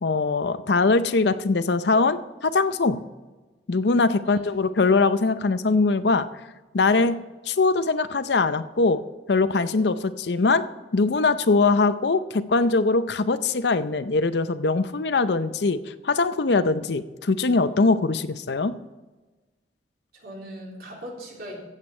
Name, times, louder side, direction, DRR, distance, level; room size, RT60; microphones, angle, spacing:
voice 1, 0.0-3.0 3.7-6.3 6.7-7.2 7.5-9.0 9.3-10.6 10.9-18.8, left 3 dB, 75° left, 13 dB, 0.6 m, -22 dB
voice 2, 20.1-21.6, equal, 55° right, -2 dB, 3.5 m, -40 dB
15.0 x 8.2 x 4.4 m, 1.2 s
head